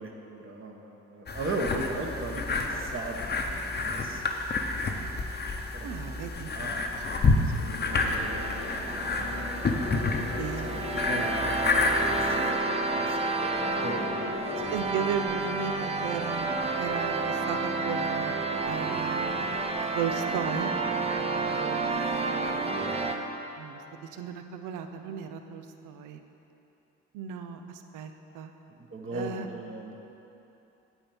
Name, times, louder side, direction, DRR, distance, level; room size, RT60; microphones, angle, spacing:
voice 1, 0.0-4.2 4.6-4.8 5.7-6.2 6.5-8.5 8.9-9.1 9.3-9.5 10.0-14.7 21.4-21.6 28.8-30.0, right 2 dB, 45° right, 1 dB, 1.2 m, -38 dB
sound 1, 1.3-12.5, left 3 dB, 35° left, 0.8 m, -29 dB
voice 2, 5.8-6.5 10.4-10.8 14.7-18.3 18.7-19.6 19.9-20.7 23.6-26.2 27.1-28.5 29.1-29.5, right 7 dB, 90° right, 7 dB, 0.6 m, -35 dB
sound 2, 7.6-14.8, left 6 dB, 65° left, 0.7 m, -41 dB
sound 3, 7.9-23.2, right 3 dB, 20° right, 0.7 m, -30 dB
8.9 x 4.5 x 7.0 m, 3.0 s
cardioid pair, 90°, 30 cm